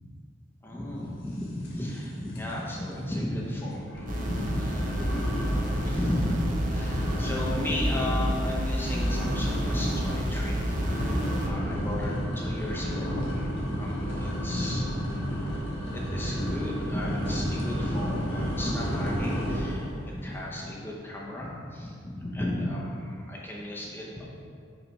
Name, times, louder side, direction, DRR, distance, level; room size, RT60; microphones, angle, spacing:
voice 1, 0.6-4.9 5.6-13.5 13.8-15.2 15.9-24.3, left 1 dB, 10° left, -4 dB, 0.6 m, -34 dB
sound 1, 1.6-2.0 2.3-2.7 3.1-3.2 3.8-20.0, equal, 70° left, 1.5 m, -31 dB
sound 2, 4.1-11.5, equal, 40° right, 0.7 m, -30 dB
5.9 x 3.3 x 5.2 m, 2.3 s
head